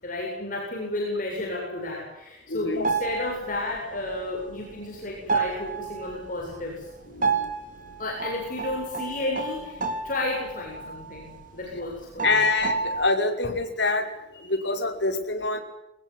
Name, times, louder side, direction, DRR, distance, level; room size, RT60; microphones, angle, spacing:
voice 1, 0.0-6.9 8.0-12.5, left 2 dB, 45° left, -1 dB, 8.0 m, -32 dB
voice 2, 2.5-2.8 7.1-7.5 12.2-14.1 14.3-15.6, left 3 dB, 70° left, 5 dB, 5.6 m, -25 dB
sound 1, 2.8-3.8 4.1-5.0 5.3-6.4 7.2-11.5 11.8-11.9 12.2-13.1, right 4 dB, 45° right, 3.2 m, -30 dB
24.0 x 21.5 x 9.6 m, 0.84 s
head